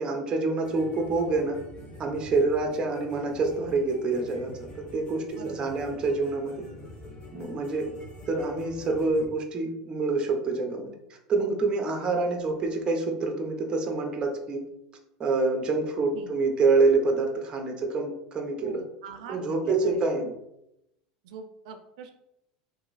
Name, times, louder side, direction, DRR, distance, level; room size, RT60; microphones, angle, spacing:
voice 1, 0.0-1.6 2.0-6.7 7.3-7.9 8.3-11.0 11.3-14.7 15.2-18.8 19.3-20.3, right 3 dB, 25° right, 3 dB, 0.6 m, -26 dB
sound 1, 0.6-9.3, equal, 30° left, 1.1 m, -46 dB
voice 2, 5.3-5.6 16.1-16.3 18.6-20.3 21.2-22.1, right 5 dB, 80° right, 6 dB, 0.4 m, -44 dB
2.9 x 2.6 x 3.9 m, 0.85 s
supercardioid pair, 135°, 4 cm